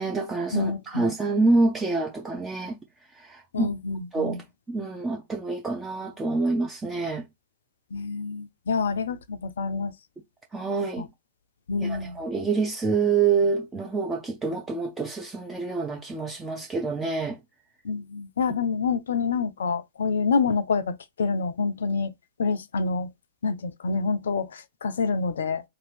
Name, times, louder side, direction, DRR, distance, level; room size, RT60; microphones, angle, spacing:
voice 1, 0.0-2.8 3.2-3.7 4.1-4.4 4.7-7.3 10.5-11.1 11.8-17.4, right 4 dB, 15° right, 0.5 m, -26 dB
voice 2, 0.5-1.0 3.5-4.4 7.9-9.9 11.0-11.1 11.7-12.2 17.8-22.1 22.4-23.1 23.4-25.6, left 4 dB, 70° left, 0.4 m, -27 dB
2.6 x 2.3 x 3.2 m
figure-of-eight pair, 105°, 0 cm